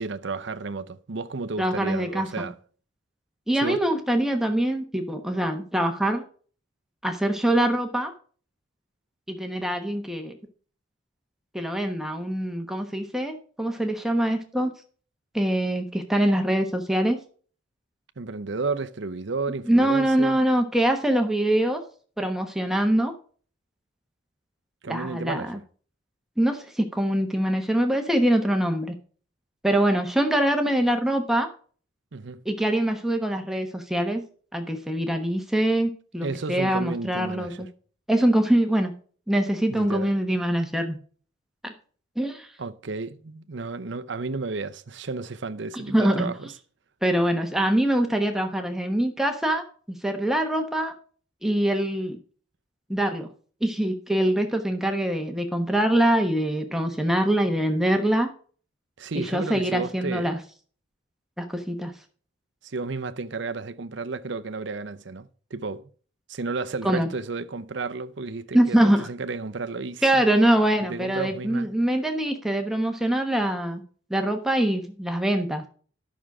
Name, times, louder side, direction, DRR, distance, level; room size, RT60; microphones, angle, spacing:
voice 1, 0.0-2.6 3.5-3.8 18.2-20.4 24.8-25.6 32.1-32.4 36.2-37.7 39.7-40.1 42.6-46.5 59.0-60.4 62.6-65.9 66.3-70.2 70.8-71.7, right 3 dB, 65° right, 0.7 m, -32 dB
voice 2, 1.6-2.5 3.5-6.2 7.0-8.1 9.3-10.3 11.5-14.7 15.3-17.2 19.7-21.8 22.2-23.1 24.9-25.6 26.4-28.9 29.6-31.5 32.4-34.2 34.5-37.7 38.1-38.9 39.3-41.0 41.6-41.7 42.2-42.5 45.7-46.3 47.0-50.9 51.4-52.2 52.9-53.3 53.6-58.3 59.1-60.4 61.4-61.9 66.8-67.1 68.5-69.1 70.0-73.8 74.1-75.6, right 1 dB, ahead, 1.1 m, -24 dB
11.0 x 6.3 x 4.8 m
head